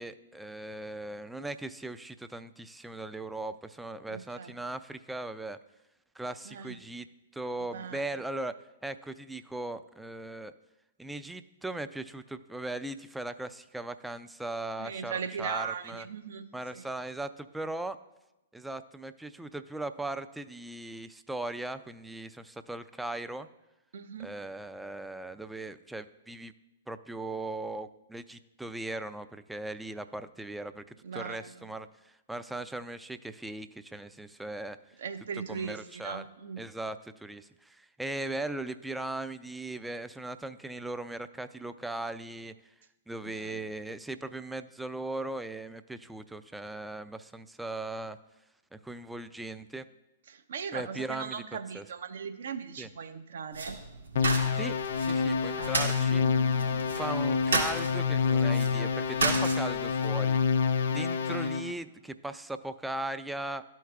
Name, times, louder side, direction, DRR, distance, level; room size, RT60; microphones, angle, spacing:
voice 1, 0.0-5.6 6.1-7.1 7.3-8.5 8.8-10.5 11.0-16.1 16.5-18.0 18.5-23.5 24.2-26.5 26.9-30.8 31.1-34.8 35.5-36.2 36.6-42.5 43.1-48.2 48.7-49.9 50.7-51.4 51.7-51.8 52.8-52.9 54.5-56.3 56.9-60.4 60.9-63.6, right 2 dB, 5° right, 11 dB, 0.3 m, -38 dB
voice 2, 4.1-4.5 6.4-6.8 7.7-8.1 14.8-16.5 16.7-16.9 23.9-24.3 31.0-31.5 35.0-36.6 43.2-43.7 50.3-53.8 55.5-56.9, right 6 dB, 65° right, 9 dB, 0.7 m, -39 dB
sound 1, 53.5-60.1, right 3 dB, 80° right, 1.9 m, -34 dB
sound 2, 54.2-61.7, left 5 dB, 60° left, 0.5 m, -27 dB
13.5 x 4.6 x 2.4 m, 0.97 s
figure-of-eight pair, 115°, 0 cm